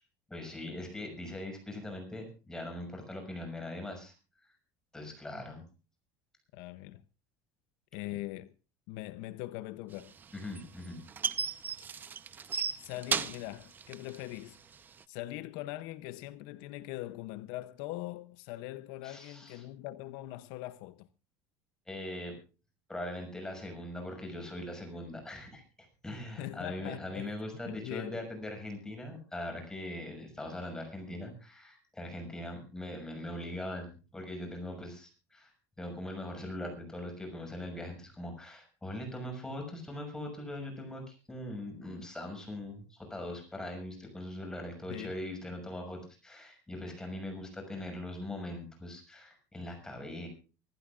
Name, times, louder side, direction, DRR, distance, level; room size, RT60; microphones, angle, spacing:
voice 1, 0.3-4.1 4.4-4.5 4.9-5.6 10.3-11.0 19.0-19.6 21.9-22.3 22.9-35.5 35.8-50.3, left 1 dB, 10° left, 6.2 m, -41 dB
voice 2, 6.5-7.0 7.9-8.5 8.9-10.1 12.4-12.5 12.8-14.6 15.1-21.1 26.4-27.3 27.7-28.2 44.9-45.1, left 16 dB, 70° left, 0.7 m, -41 dB
sound 1, 10.0-15.0, right 6 dB, 25° right, 0.8 m, -35 dB
25.0 x 15.0 x 2.5 m
cardioid pair, 150°, 8 cm